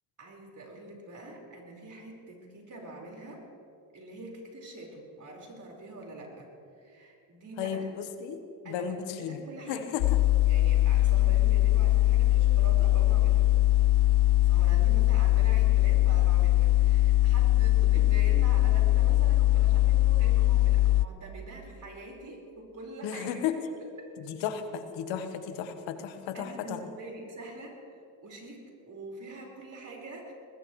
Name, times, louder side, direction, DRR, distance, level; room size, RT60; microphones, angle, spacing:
voice 1, 0.2-3.4 3.9-6.5 6.8-7.9 8.6-9.9 10.5-13.5 14.4-23.4 24.0-24.1 26.3-27.9 28.2-30.3, right 2 dB, 45° right, -1 dB, 4.8 m, -44 dB
voice 2, 7.6-8.4 8.7-9.4 9.7-10.0 23.0-23.5 24.3-26.8, left 8 dB, 85° left, 7 dB, 1.4 m, -34 dB
sound 1, 10.0-21.1, left 15 dB, 65° left, 0.5 m, -22 dB
21.0 x 20.5 x 3.2 m, 2.5 s
cardioid pair, 90°, 44 cm